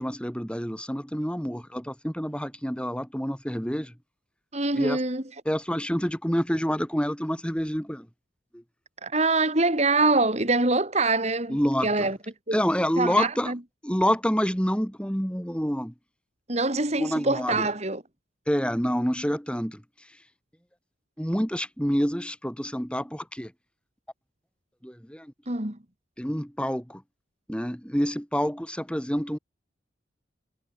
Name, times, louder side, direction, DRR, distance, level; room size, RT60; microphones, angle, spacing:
voice 1, 0.0-3.9 4.7-5.0 5.4-8.1 8.5-8.6 11.5-12.1 12.5-13.5 13.8-15.9 17.0-17.7 18.5-20.2 21.2-23.5 24.8-25.3 26.2-27.0 27.5-29.4, equal, 5° left, 6.1 m, -28 dB
voice 2, 4.5-5.2 9.0-12.2 12.5-12.6 13.0-13.6 16.5-18.0 25.5-25.8, right 3 dB, 35° right, 2.8 m, -24 dB
head